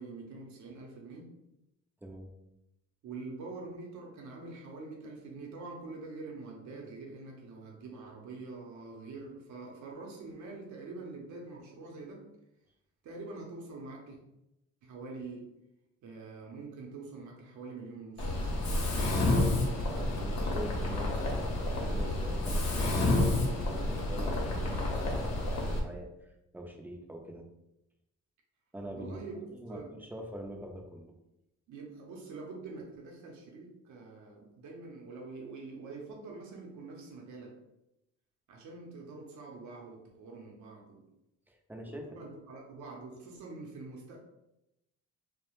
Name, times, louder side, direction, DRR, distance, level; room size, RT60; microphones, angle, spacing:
voice 1, 0.0-1.3 3.0-12.3 13.0-14.2 14.8-15.5 16.0-18.5 28.9-29.4 29.7-29.9 31.7-37.6 38.5-41.0 41.9-44.2, right 3 dB, 70° right, -1 dB, 0.6 m, -45 dB
voice 2, 2.0-2.3 19.8-27.4 28.7-29.2 29.5-31.1 41.5-42.1, right 1 dB, 5° right, 2 dB, 0.4 m, -44 dB
Mechanisms, 18.2-25.8, left 2 dB, 65° left, 0.7 m, -30 dB
2.3 x 2.1 x 3.0 m, 0.88 s
cardioid pair, 90°, 30 cm